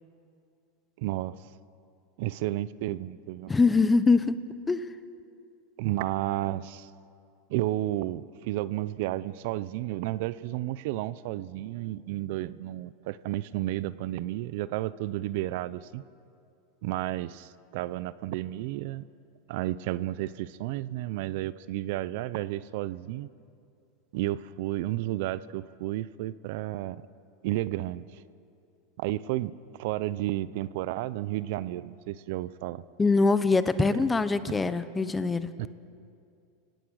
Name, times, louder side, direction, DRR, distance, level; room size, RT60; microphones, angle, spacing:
voice 1, 1.0-1.5 2.2-3.5 5.8-6.9 7.5-16.0 16.8-19.0 19.5-23.3 24.1-27.0 27.4-28.1 29.0-29.5 29.8-32.8 33.9-34.0 34.5-34.6 34.9-35.0 35.6-35.7, right 15 dB, 65° right, 17 dB, 0.6 m, -32 dB
voice 2, 3.5-4.4 4.7-4.9 33.0-35.5, left 4 dB, 15° left, 13 dB, 1.0 m, -23 dB
29.0 x 17.0 x 6.4 m, 2.5 s
hypercardioid pair, 115°, 0 cm